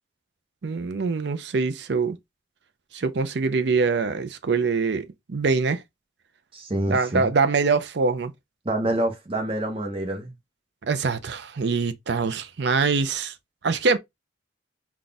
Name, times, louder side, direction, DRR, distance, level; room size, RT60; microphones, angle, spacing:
voice 1, 0.6-2.2 2.9-5.8 6.9-8.3 10.8-13.3 13.6-14.0, right 4 dB, 65° right, 0.5 m, -24 dB
voice 2, 6.5-7.3 8.6-10.3, right 1 dB, 30° right, 1.0 m, -27 dB
4.0 x 2.4 x 3.4 m
head